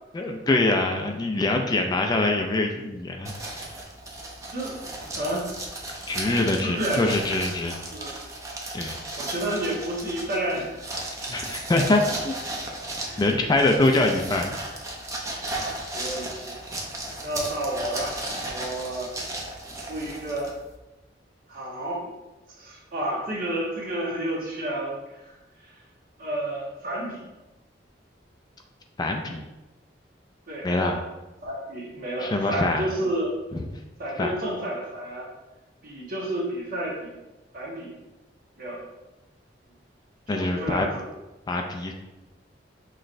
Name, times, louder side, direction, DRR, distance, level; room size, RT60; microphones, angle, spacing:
voice 1, 0.1-3.3 6.1-7.8 8.7-9.0 11.3-12.4 13.2-14.6 29.0-29.4 30.6-31.0 32.2-32.8 34.2-34.3 40.3-40.9 41.5-41.9, left 2 dB, 20° left, 3 dB, 0.3 m, -24 dB
sound 1, 3.2-20.7, right 1 dB, 20° right, 0.6 m, -35 dB
voice 2, 6.6-7.1 7.9-8.3 8.8-8.9 9.2-10.8 11.9-12.1 13.0-13.4 13.7-13.9 15.4-16.5 17.2-19.1 19.7-20.6 21.5-22.1 22.6-25.3 26.2-27.3 30.5-30.9 31.4-33.4 34.0-35.3 35.8-37.1 37.5-37.9 38.6-38.8 40.3-41.0, right 1 dB, 50° right, -4 dB, 1.3 m, -31 dB
5.9 x 3.2 x 2.5 m, 1.0 s
head